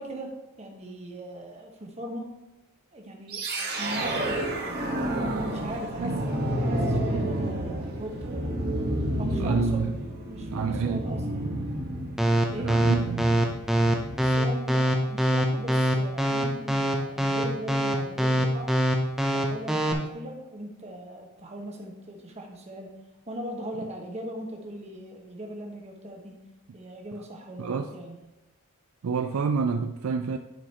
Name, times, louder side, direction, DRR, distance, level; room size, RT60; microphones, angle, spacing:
voice 1, 0.0-2.3 2.9-3.4 3.7-4.9 5.4-8.5 9.2-9.8 10.3-11.5 12.5-12.7 14.2-18.7 19.3-22.9 23.3-26.4 26.7-28.2, right 1 dB, 30° right, 1.2 m, -39 dB
sound 1, 3.3-14.4, right 1 dB, 45° right, 1.3 m, -30 dB
voice 2, 9.4-9.9 10.5-11.1 12.6-13.4 27.6-27.9 29.0-30.4, right 5 dB, 65° right, 0.4 m, -28 dB
sound 2, 12.2-19.9, right 1 dB, ahead, 0.6 m, -23 dB
10.5 x 4.9 x 3.0 m
head